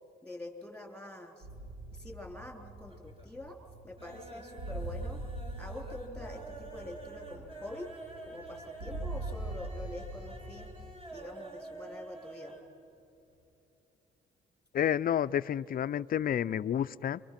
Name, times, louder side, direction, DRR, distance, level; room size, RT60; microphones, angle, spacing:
voice 1, 0.2-1.5 1.9-3.6 3.8-5.2 5.6-7.9 8.3-10.7 11.1-12.5, left 1 dB, 5° left, 4 dB, 3.4 m, -45 dB
sound 1, 1.4-10.8, right 2 dB, 80° right, 3.8 m, -42 dB
sound 2, 1.9-2.5 2.8-3.4 3.7-12.7 13.0-13.1 13.4-13.5, right 2 dB, 30° right, 4.4 m, -48 dB
voice 2, 14.7-17.2, left 9 dB, 45° left, 14 dB, 0.5 m, -30 dB
29.0 x 24.5 x 5.9 m, 2.9 s
cardioid pair, 90°, 20 cm